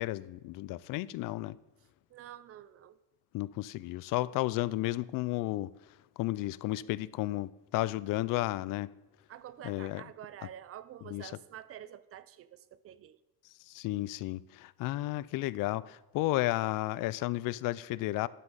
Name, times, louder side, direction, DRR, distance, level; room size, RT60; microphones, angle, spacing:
voice 1, 0.0-1.6 3.3-5.7 6.2-8.9 9.6-10.0 11.1-11.3 13.7-18.3, left 17 dB, 55° left, 0.4 m, -33 dB
voice 2, 2.1-3.0 9.3-13.2, right 11 dB, 35° right, 0.5 m, -48 dB
12.0 x 9.8 x 4.0 m
cardioid pair, 145°, 40 cm